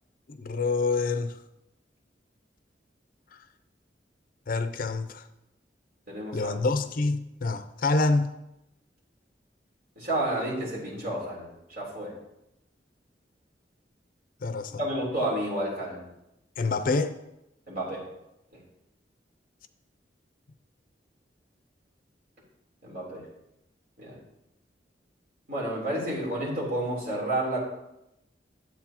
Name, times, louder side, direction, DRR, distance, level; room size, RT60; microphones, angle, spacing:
voice 1, 0.3-1.3 4.5-5.2 6.3-8.3 14.4-14.8 16.6-17.2, left 3 dB, 55° left, 0.5 m, -26 dB
voice 2, 6.1-6.5 9.9-12.2 14.8-16.0 17.7-18.1 22.8-23.2 24.0-24.2 25.5-27.6, right 1 dB, 55° right, 3.5 m, -30 dB
11.0 x 7.8 x 2.9 m
head